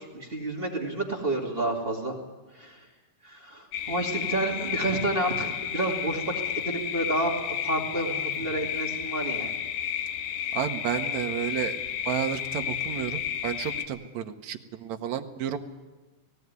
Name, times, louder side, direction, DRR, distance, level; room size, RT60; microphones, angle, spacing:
voice 1, 0.0-2.2 2.5-2.8 3.2-9.6, right 2 dB, 20° right, 0 dB, 2.1 m, -30 dB
sound 1, 3.7-13.9, left 9 dB, 75° left, 2.6 m, -32 dB
voice 2, 10.5-11.8 12.1-15.6, right 10 dB, 65° right, 6 dB, 2.0 m, -31 dB
18.0 x 17.5 x 9.5 m, 1.2 s
omnidirectional pair, 3.8 m